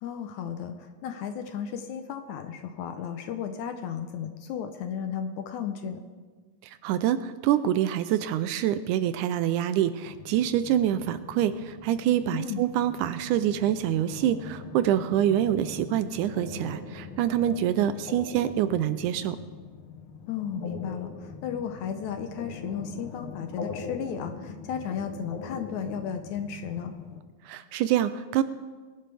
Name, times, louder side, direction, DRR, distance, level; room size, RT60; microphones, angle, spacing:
voice 1, 0.0-6.0 12.3-12.6 20.3-26.9, left 8 dB, 75° left, 7 dB, 2.0 m, -34 dB
voice 2, 6.8-19.4 27.5-28.4, right 11 dB, 80° right, 12 dB, 1.9 m, -26 dB
sound 1, 10.0-27.2, left 5 dB, 90° left, 1.1 m, -42 dB
21.5 x 11.0 x 3.4 m, 1.4 s
omnidirectional pair, 3.8 m